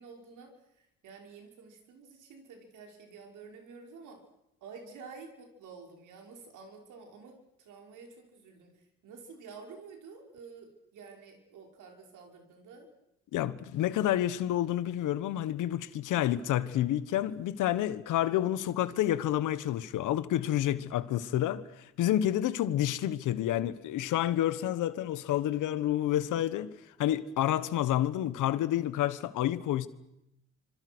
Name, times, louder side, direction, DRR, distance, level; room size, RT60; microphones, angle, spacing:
voice 1, 0.0-4.2 4.6-8.7 9.0-12.9, right 5 dB, 85° right, 5.9 m, -50 dB
voice 2, 13.3-26.7 27.0-29.9, left 12 dB, 85° left, 1.5 m, -29 dB
26.5 x 26.5 x 6.3 m
cardioid pair, 90°, 30 cm